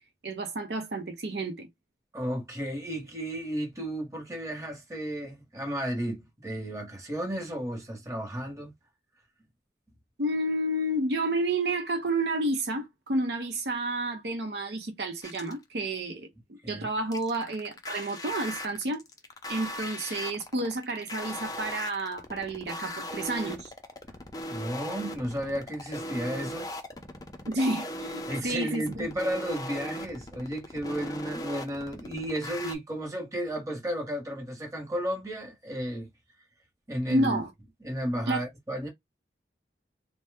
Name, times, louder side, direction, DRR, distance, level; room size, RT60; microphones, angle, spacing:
voice 1, 0.2-1.7 10.2-19.0 19.5-23.7 27.5-29.1 37.1-37.5 38.3-38.4, right 2 dB, 70° right, 0.6 m, -30 dB
voice 2, 2.1-8.7 16.6-16.9 24.5-26.7 28.3-36.1 36.9-37.4 37.8-38.9, equal, 20° right, 1.0 m, -33 dB
sound 1, 15.2-15.6 17.1-32.7, left 1 dB, 20° left, 0.5 m, -38 dB
2.7 x 2.1 x 3.4 m
head